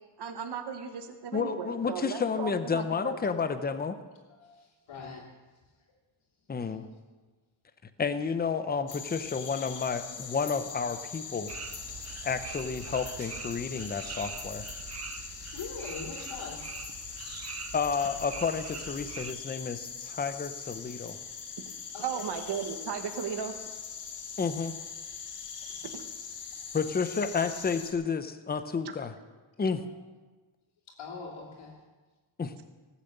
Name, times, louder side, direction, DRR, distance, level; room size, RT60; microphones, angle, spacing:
voice 1, 0.2-3.2 21.6-21.7 22.0-23.5 25.8-25.9, right 7 dB, 55° right, 6 dB, 1.3 m, -36 dB
voice 2, 1.3-4.0 6.5-6.9 8.0-11.5 12.2-14.7 17.7-21.2 24.4-24.7 26.7-29.1 29.6-29.8 32.4-32.5, left 5 dB, 20° left, 10 dB, 0.6 m, -31 dB
voice 3, 4.4-5.2 5.5-5.9 6.4-6.8 12.4-12.5 15.3-16.6 21.9-22.3 25.6-25.9 29.8-30.0 31.0-31.8, left 5 dB, 80° left, -7 dB, 3.0 m, -43 dB
sound 1, 8.9-27.9, left 6 dB, 60° left, 1.8 m, -42 dB
sound 2, 11.5-19.3, right 8 dB, 35° right, 0.5 m, -43 dB
18.5 x 7.2 x 8.0 m, 1.3 s
wide cardioid pair, 175°, 47 cm